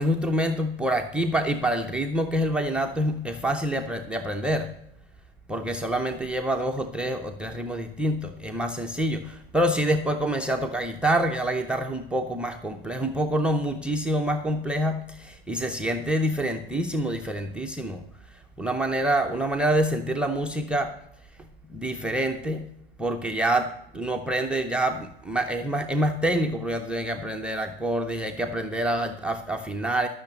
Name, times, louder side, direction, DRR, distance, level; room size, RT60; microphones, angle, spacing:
voice 1, 0.0-4.7 5.5-18.0 18.6-20.9 21.7-22.7 23.0-23.7 23.9-30.1, right 1 dB, 5° right, 7 dB, 0.6 m, -26 dB
13.5 x 6.4 x 7.8 m, 0.78 s
figure-of-eight pair, 105°, 30 cm